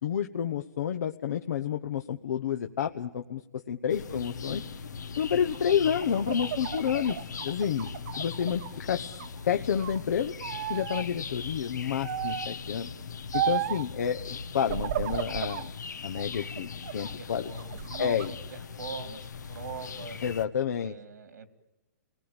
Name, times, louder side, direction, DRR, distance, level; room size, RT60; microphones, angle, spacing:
voice 1, 0.0-4.6 5.2-7.9 8.2-9.1 9.4-10.3 10.7-12.9 13.3-15.7 16.0-17.5 18.0-18.3 20.2-20.9, left 8 dB, 70° left, 6 dB, 1.1 m, -29 dB
sound 1, 3.9-20.5, left 6 dB, 90° left, 1.6 m, -40 dB
sound 2, 5.5-8.7 9.1-10.0 10.4-11.0 12.0-12.6 13.3-13.9 14.6-15.7 16.2-17.1 17.6-18.3, right 11 dB, 55° right, 0.9 m, -34 dB
voice 2, 17.0-20.2 20.8-21.5, right 5 dB, 90° right, 10 dB, 3.0 m, -42 dB
29.5 x 19.5 x 9.0 m, 1.1 s
hypercardioid pair, 150°, 9 cm